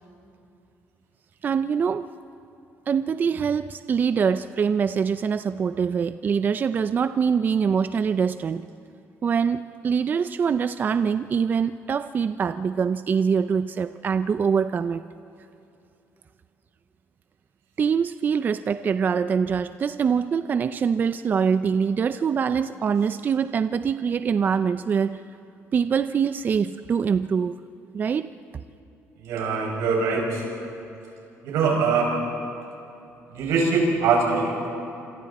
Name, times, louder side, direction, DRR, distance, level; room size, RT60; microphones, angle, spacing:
voice 1, 1.4-2.1 2.9-8.7 9.2-15.0 17.8-25.2 25.7-27.6 27.9-28.3, right 6 dB, 35° right, 11 dB, 0.5 m, -24 dB
voice 2, 29.2-30.4 31.4-32.1 33.3-34.7, right 4 dB, 90° right, -1 dB, 6.6 m, -23 dB
28.0 x 26.5 x 4.3 m, 2.8 s
cardioid pair, 115°, 5 cm